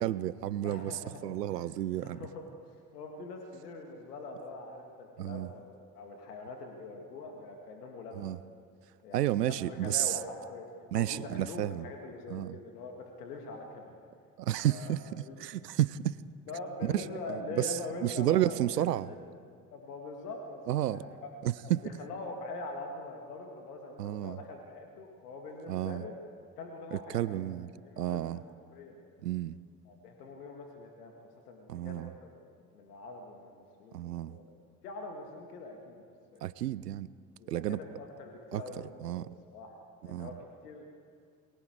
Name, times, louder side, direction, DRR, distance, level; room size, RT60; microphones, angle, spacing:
voice 1, 0.0-2.3 5.2-5.5 8.2-8.4 9.1-10.2 10.9-11.9 12.3-12.6 14.4-15.0 15.4-16.1 16.8-19.1 20.7-21.0 21.4-21.8 24.0-24.4 25.7-26.0 26.9-27.7 28.0-28.4 29.2-29.6 31.7-32.1 33.9-34.4 36.4-37.1 37.5-37.8 38.5-38.6 39.0-39.3 40.1-40.3, right 13 dB, 75° right, 19 dB, 0.7 m, -31 dB
voice 2, 0.6-1.7 2.0-2.5 2.9-8.3 9.0-10.7 10.9-14.0 14.5-14.9 15.2-15.4 16.5-19.2 19.7-21.3 21.6-26.1 26.6-27.4 27.8-29.1 29.9-32.3 32.7-34.4 34.8-36.4 37.4-39.7 40.1-40.9, left 3 dB, 70° left, 2 dB, 2.2 m, -44 dB
28.5 x 23.5 x 4.7 m, 2.2 s
figure-of-eight pair, 60°, 48 cm